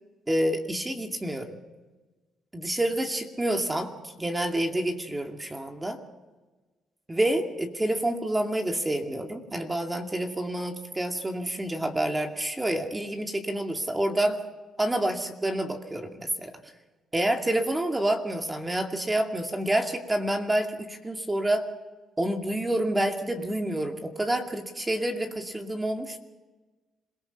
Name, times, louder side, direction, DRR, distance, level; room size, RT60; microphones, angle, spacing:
voice 1, 0.3-1.6 2.5-3.9 4.2-6.0 7.1-14.4 14.8-16.5 17.1-21.6 22.2-26.2, right 1 dB, 15° right, 3 dB, 2.4 m, -28 dB
27.0 x 18.0 x 5.9 m, 1.2 s
cardioid pair, 90°, 0 cm